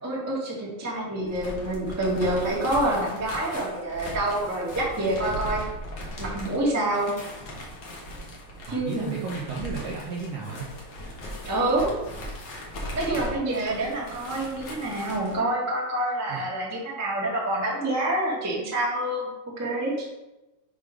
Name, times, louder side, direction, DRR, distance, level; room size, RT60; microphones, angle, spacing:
voice 1, 0.0-5.6 6.2-7.1 8.7-9.1 11.4-11.9 12.9-19.3 19.6-20.1, right 1 dB, 20° right, -5 dB, 0.4 m, -27 dB
sound 1, 1.2-15.4, equal, 75° left, 1.0 m, -38 dB
voice 2, 8.7-10.7 16.3-16.4, right 4 dB, 75° right, -3 dB, 1.6 m, -33 dB
6.5 x 3.6 x 5.0 m, 1.0 s
omnidirectional pair, 3.9 m